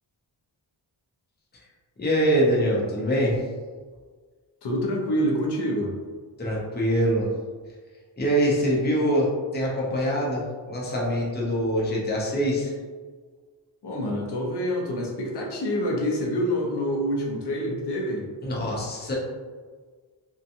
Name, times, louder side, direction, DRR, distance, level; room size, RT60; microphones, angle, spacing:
voice 1, 2.0-3.4 6.4-7.3 8.2-12.7 18.4-19.1, equal, 20° left, -4 dB, 0.6 m, -24 dB
voice 2, 4.6-6.0 13.8-18.3, equal, 60° left, 0 dB, 0.7 m, -27 dB
2.8 x 2.2 x 2.6 m, 1.5 s
wide cardioid pair, 90°, 47 cm